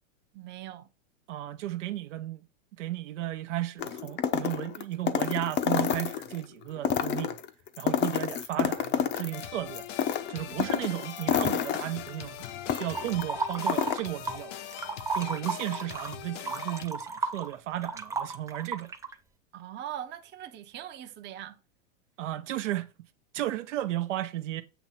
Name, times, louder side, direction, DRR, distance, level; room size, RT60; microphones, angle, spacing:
voice 1, 0.3-0.9 19.5-21.6, right 11 dB, 30° right, 0.8 m, -41 dB
voice 2, 1.3-2.4 2.8-7.4 7.8-9.9 10.3-14.5 15.1-18.9 22.2-22.9 23.3-24.6, right 14 dB, 70° right, 0.9 m, -34 dB
sound 1, 3.8-6.4 6.8-9.4 9.7-13.2 13.5-14.0, left 9 dB, 30° left, 0.7 m, -29 dB
sound 2, 9.3-16.9, left 11 dB, 70° left, 1.0 m, -42 dB
sound 3, 12.9-14.4 14.7-19.1, right 3 dB, 10° right, 0.4 m, -33 dB
8.0 x 3.0 x 5.7 m
hypercardioid pair, 120°, 38 cm